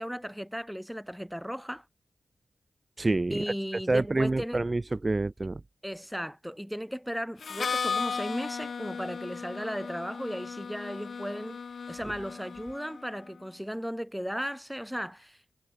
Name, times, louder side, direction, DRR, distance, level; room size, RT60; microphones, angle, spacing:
voice 1, 0.0-1.8 3.3-4.6 5.8-11.6 11.9-15.5, equal, ahead, 2.2 m, -36 dB
voice 2, 3.0-3.4 3.9-5.6, right 2 dB, 35° right, 1.2 m, -27 dB
Harmonica, 7.4-13.1, left 5 dB, 70° left, 0.7 m, -36 dB
cardioid pair, 40°, 0 cm